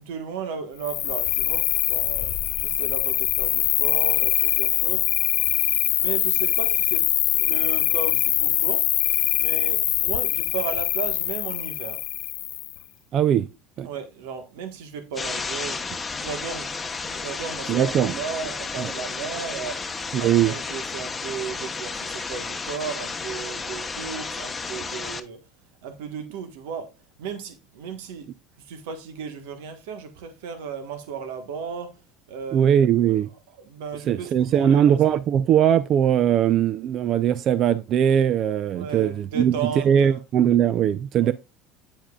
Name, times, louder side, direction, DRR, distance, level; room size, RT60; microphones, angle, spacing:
voice 1, 0.0-5.1 6.0-7.1 7.4-8.9 9.3-12.0 13.8-15.9 16.2-16.7 17.0-19.9 20.2-25.4 25.8-26.9 27.2-28.3 28.6-32.0 32.3-32.7 33.0-33.2 33.7-34.9 38.7-40.2 41.2-41.3, right 6 dB, 85° right, 1.3 m, -35 dB
Cricket, 0.8-12.8, left 16 dB, 60° left, 0.6 m, -23 dB
voice 2, 13.1-13.5 13.8-13.9 17.7-18.2 18.8-18.9 20.1-20.5 32.5-33.3 34.1-41.3, right 9 dB, 45° right, 0.5 m, -20 dB
sound 1, 15.1-25.2, left 4 dB, 15° left, 0.9 m, -32 dB
8.9 x 7.3 x 2.3 m
supercardioid pair, 120°, 0 cm